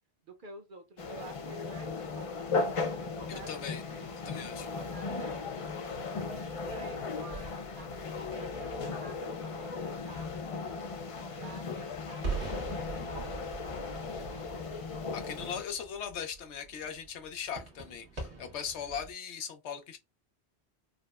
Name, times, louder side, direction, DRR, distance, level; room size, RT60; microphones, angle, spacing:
voice 1, 0.2-2.7 3.1-4.3 4.7-10.6 11.3-12.7 13.1-13.4 13.8-14.6, right 3 dB, 50° right, 0.8 m, -51 dB
sound 1, 1.0-15.6, left 4 dB, 50° left, 0.4 m, -37 dB
voice 2, 3.5-3.8 4.2-4.7 15.1-20.0, left 7 dB, 90° left, 1.0 m, -39 dB
sound 2, 7.3-19.1, right 4 dB, 80° right, 1.5 m, -44 dB
4.9 x 2.0 x 2.2 m
omnidirectional pair, 1.1 m